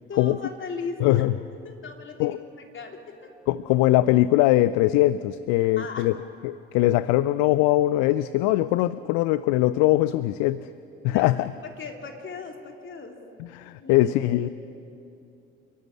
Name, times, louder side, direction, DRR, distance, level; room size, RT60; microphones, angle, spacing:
voice 1, 0.1-1.2 1.6-2.4 2.7-3.3 5.6-6.1 11.0-11.3 11.6-13.2 13.8-14.1 14.4-14.5, left 5 dB, 40° left, 2 dB, 3.3 m, -37 dB
voice 2, 1.0-1.3 2.2-2.4 3.5-6.1 6.4-10.7 11.0-11.5 13.5-14.5, left 16 dB, 60° left, 16 dB, 0.5 m, -21 dB
29.5 x 11.5 x 8.7 m, 2.7 s
figure-of-eight pair, 55°, 31 cm